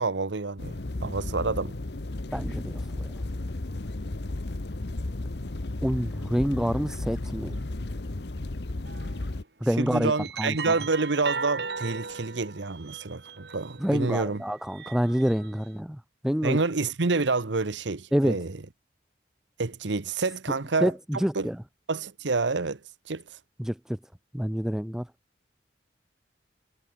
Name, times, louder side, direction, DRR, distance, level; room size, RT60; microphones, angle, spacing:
voice 1, 0.0-1.8 9.8-14.4 16.4-18.6 19.6-20.9 21.3-21.5 21.9-22.8 23.1-23.4, right 3 dB, 80° right, 1.0 m, -28 dB
sound 1, 0.6-9.4, left 2 dB, 65° left, 1.0 m, -34 dB
voice 2, 2.3-3.0 5.8-7.6 9.6-10.1 10.4-10.7 13.8-16.6 18.1-18.4 20.8-21.6 23.6-24.0 24.3-25.1, equal, 5° right, 0.3 m, -27 dB
sound 2, 8.9-9.2 9.8-14.0 14.5-15.7, right 5 dB, 60° right, 2.0 m, -38 dB
head